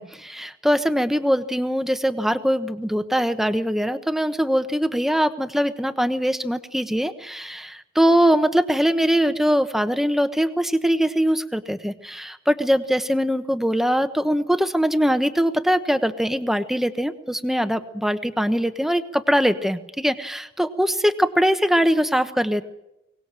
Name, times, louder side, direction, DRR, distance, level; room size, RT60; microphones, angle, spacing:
voice 1, 0.0-22.6, equal, ahead, 9 dB, 1.1 m, -22 dB
23.5 x 19.0 x 7.6 m, 0.90 s
head